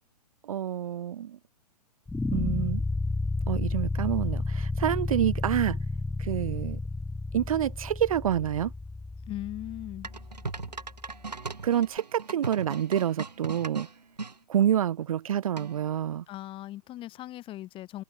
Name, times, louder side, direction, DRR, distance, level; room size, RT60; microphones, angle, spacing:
voice 1, 0.4-1.4 2.3-2.8 3.5-5.8 6.2-6.8 7.3-8.7 11.6-13.9 14.5-16.2, right 10 dB, 55° right, 1.6 m, -28 dB
sound 1, 2.1-11.2, left 3 dB, 5° left, 2.0 m, -32 dB
voice 2, 9.3-10.1 16.3-18.0, left 14 dB, 25° left, 6.4 m, -39 dB
sound 2, 10.0-14.3 15.6-16.0, right 4 dB, 80° right, 7.0 m, -38 dB
figure-of-eight pair, 115°, 21 cm